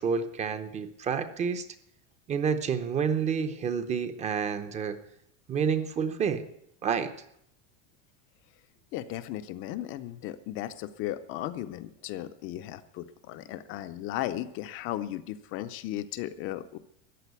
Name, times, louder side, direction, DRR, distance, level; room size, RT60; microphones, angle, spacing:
voice 1, 0.0-1.7 2.3-5.0 5.5-6.4 6.8-7.1, right 6 dB, 20° right, 10 dB, 0.7 m, -29 dB
voice 2, 8.9-16.8, left 13 dB, 35° left, 10 dB, 0.6 m, -36 dB
14.5 x 9.9 x 8.2 m, 0.76 s
cardioid pair, 175°, 35 cm